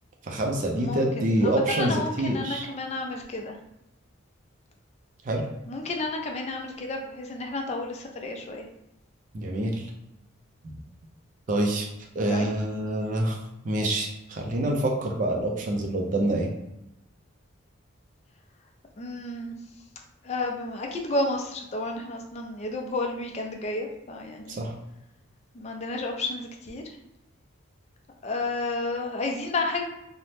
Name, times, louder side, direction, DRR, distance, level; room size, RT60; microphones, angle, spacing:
voice 1, 0.2-2.6 5.2-5.5 9.3-9.9 10.6-10.7 11.5-11.9 12.1-13.4 13.6-16.5 24.5-24.7, right 1 dB, 40° right, 0 dB, 0.4 m, -26 dB
voice 2, 0.7-3.5 5.7-8.7 12.3-12.5 19.0-19.6 20.2-24.6 25.5-26.8 28.2-29.8, left 2 dB, 35° left, 2 dB, 0.4 m, -31 dB
2.7 x 2.0 x 3.2 m, 0.86 s
head